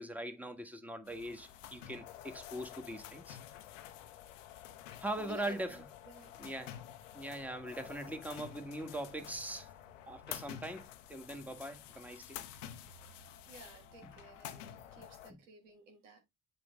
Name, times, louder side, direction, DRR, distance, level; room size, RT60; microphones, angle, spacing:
voice 1, 0.0-3.4 5.0-5.9 6.4-6.8 7.1-9.7 10.1-12.4 14.0-14.1 15.3-15.4, right 1 dB, 5° right, 1.7 m, -41 dB
sound 1, 1.1-15.3, left 11 dB, 90° left, 0.7 m, -50 dB
voice 2, 4.9-6.5 13.0-13.2 13.4-16.2, right 5 dB, 90° right, 1.6 m, -56 dB
7.7 x 5.2 x 3.5 m
hypercardioid pair, 50°, 36 cm